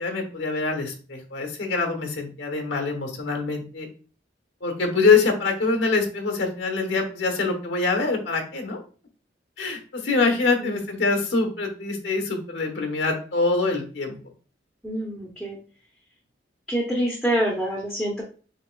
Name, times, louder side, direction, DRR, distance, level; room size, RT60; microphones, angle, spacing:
voice 1, 0.0-3.9 4.6-8.8 9.6-14.2, left 4 dB, 75° left, 4 dB, 1.1 m, -24 dB
voice 2, 10.5-10.8 14.8-15.6 16.7-18.2, right 1 dB, ahead, -4 dB, 0.7 m, -26 dB
6.5 x 2.9 x 2.3 m, 0.39 s
head